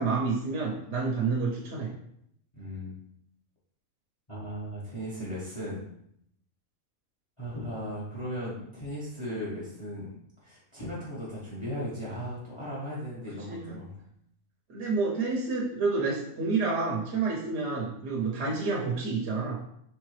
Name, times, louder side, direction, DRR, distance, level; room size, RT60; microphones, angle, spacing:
voice 1, 0.0-1.9 13.5-13.8 14.7-19.6, right 4 dB, 60° right, -2 dB, 1.0 m, -29 dB
voice 2, 2.5-2.9 4.3-5.8 7.4-10.1 10.4-14.0, equal, 20° left, -7 dB, 1.2 m, -37 dB
4.6 x 3.3 x 3.2 m, 0.72 s
omnidirectional pair, 1.5 m